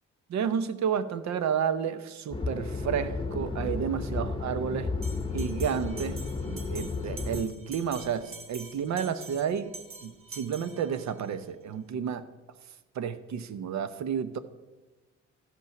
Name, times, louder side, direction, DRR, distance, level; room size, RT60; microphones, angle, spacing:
voice 1, 0.3-4.9 5.3-9.7 10.0-12.2 12.9-14.4, right 7 dB, 65° right, 13 dB, 0.8 m, -31 dB
sound 1, 2.3-7.4, left 3 dB, 15° left, 0.9 m, -33 dB
Bell, 5.0-11.3, right 3 dB, 45° right, 1.3 m, -46 dB
13.5 x 5.4 x 5.9 m, 1.2 s
cardioid pair, 90°, 30 cm